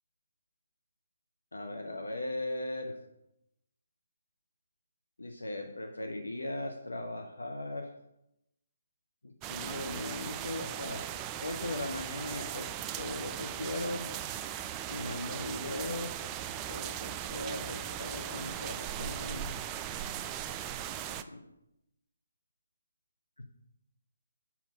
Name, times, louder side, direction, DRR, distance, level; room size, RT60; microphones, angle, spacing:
voice 1, 1.5-3.0 5.2-7.9 9.5-11.1 11.4-12.7 13.0-14.1 14.9-16.2 16.7-19.5 21.3-21.4 23.4-23.5, left 2 dB, 75° left, 4 dB, 0.7 m, -38 dB
sound 1, 9.4-21.2, right 10 dB, 20° right, 0.3 m, -38 dB
5.9 x 4.0 x 5.4 m, 0.86 s
figure-of-eight pair, 140°, 0 cm